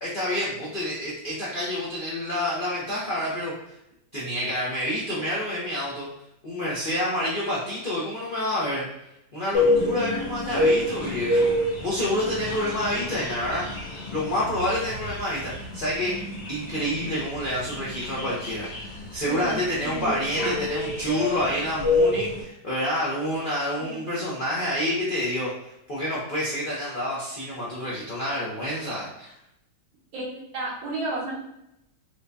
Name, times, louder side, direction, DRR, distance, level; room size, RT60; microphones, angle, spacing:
voice 1, 0.0-3.5 4.1-6.1 6.4-8.9 9.3-13.7 14.1-16.1 16.5-25.5 25.9-29.3, left 1 dB, 60° left, -7 dB, 0.5 m, -28 dB
sound 1, 9.5-22.4, left 1 dB, 75° left, 1.8 m, -27 dB
voice 2, 19.2-20.2 23.8-24.0 30.1-31.3, right 2 dB, 80° right, -6 dB, 2.0 m, -32 dB
4.5 x 2.2 x 2.6 m, 0.83 s
omnidirectional pair, 2.1 m